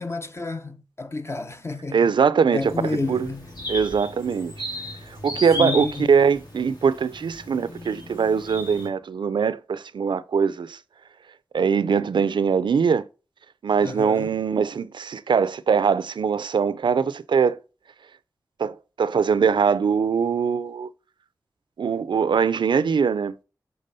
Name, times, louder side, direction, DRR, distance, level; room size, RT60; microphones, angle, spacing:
voice 1, 0.0-2.1 2.5-3.5 5.6-6.1 13.8-14.3, left 3 dB, 35° left, 0.8 m, -30 dB
voice 2, 1.9-3.3 3.7-4.5 5.1-10.8 11.5-13.1 13.6-17.6 18.6-20.9 21.8-23.3, right 6 dB, 85° right, 0.4 m, -22 dB
sound 1, 2.6-8.9, left 1 dB, 60° left, 2.4 m, -35 dB
6.7 x 3.4 x 5.4 m
cardioid pair, 55°, 8 cm